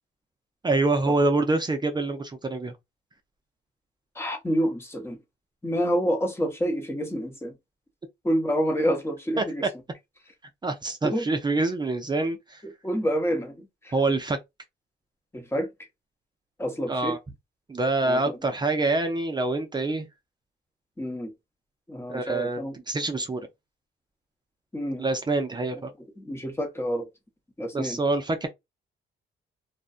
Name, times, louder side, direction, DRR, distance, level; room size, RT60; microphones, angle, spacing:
voice 1, 0.6-2.7 9.4-9.5 10.6-12.6 13.9-14.4 16.9-17.2 17.7-20.1 22.1-23.5 25.0-25.9 27.7-28.5, right 2 dB, 20° right, 0.5 m, -26 dB
voice 2, 4.1-5.2 5.6-7.5 8.2-9.6 11.1-11.3 12.8-13.9 15.3-15.7 16.6-17.2 18.0-18.4 21.0-21.3 21.9-22.8 24.7-25.1 26.2-27.1 27.6-28.0, equal, 10° left, 0.9 m, -28 dB
2.5 x 2.2 x 2.4 m
cardioid pair, 90°, 20 cm